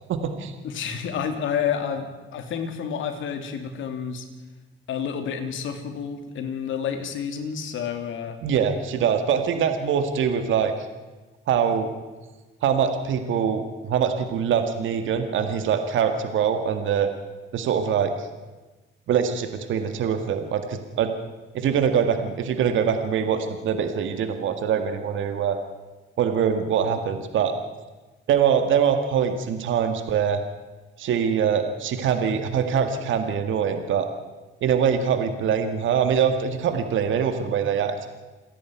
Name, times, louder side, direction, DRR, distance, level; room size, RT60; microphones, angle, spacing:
voice 1, 0.1-0.5 8.4-10.7 11.5-11.9 12.6-17.1 17.5-18.3 19.1-21.1 21.5-25.6 26.2-27.5 28.3-30.4 31.0-34.1 34.6-38.1, right 7 dB, 75° right, 8 dB, 2.0 m, -23 dB
voice 2, 0.6-4.3 4.9-8.4, left 7 dB, 80° left, 6 dB, 3.1 m, -29 dB
28.5 x 11.0 x 9.4 m, 1.2 s
cardioid pair, 90°, 20 cm